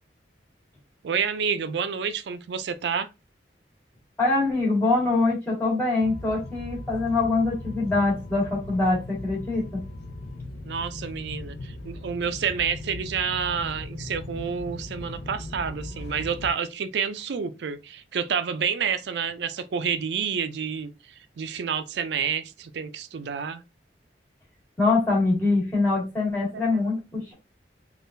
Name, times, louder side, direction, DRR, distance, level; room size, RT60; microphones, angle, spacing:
voice 1, 1.0-3.1 10.7-20.9 21.4-23.6 26.5-26.8, right 6 dB, 75° right, 0.4 m, -29 dB
voice 2, 4.2-9.8 24.8-27.3, left 3 dB, 10° left, 1.6 m, -24 dB
sound 1, 6.0-16.5, left 2 dB, 65° left, 0.5 m, -38 dB
3.6 x 2.4 x 2.6 m
head